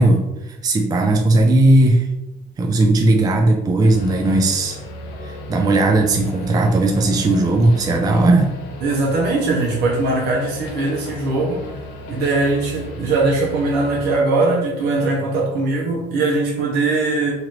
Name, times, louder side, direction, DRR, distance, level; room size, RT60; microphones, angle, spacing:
voice 1, 0.0-2.1 2.6-4.8 5.2-8.5, right 2 dB, 25° right, 2 dB, 0.4 m, -16 dB
sound 1, 3.8-14.1, left 2 dB, 85° left, 0.5 m, -35 dB
voice 2, 8.8-11.6 12.1-17.3, right 3 dB, 75° right, -2 dB, 0.7 m, -20 dB
2.9 x 2.5 x 3.0 m, 0.94 s
cardioid pair, 110°, 17 cm